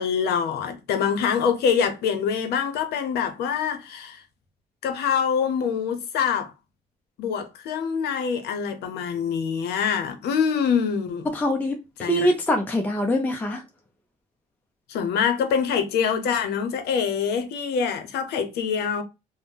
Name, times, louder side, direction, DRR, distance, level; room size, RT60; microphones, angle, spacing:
voice 1, 0.0-4.2 4.8-6.5 7.2-11.3 12.0-12.3 14.9-19.0, left 7 dB, 75° left, 0.7 m, -25 dB
voice 2, 11.3-13.6, equal, 10° left, 0.4 m, -24 dB
2.6 x 2.0 x 3.4 m
cardioid pair, 110°, 17 cm